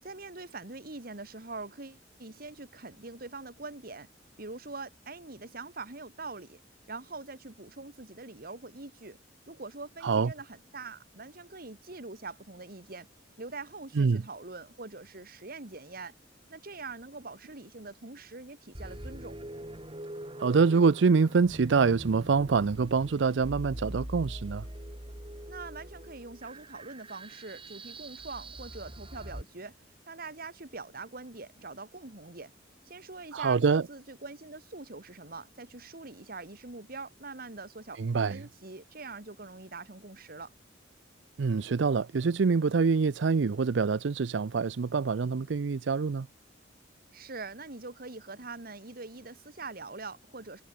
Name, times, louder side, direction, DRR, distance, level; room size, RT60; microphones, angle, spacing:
voice 1, 0.0-4.1 4.4-6.6 6.9-9.2 9.5-13.1 13.4-16.1 16.5-19.4 25.5-29.8 30.1-32.5 32.9-38.0 38.3-40.5 47.1-50.6, right 3 dB, 50° right, 2.0 m, -43 dB
sound 1, 18.7-29.4, right 1 dB, 30° right, 4.3 m, -43 dB
voice 2, 20.4-24.7 33.3-33.8 38.0-38.4 41.4-46.3, right 5 dB, 75° right, 0.5 m, -25 dB
head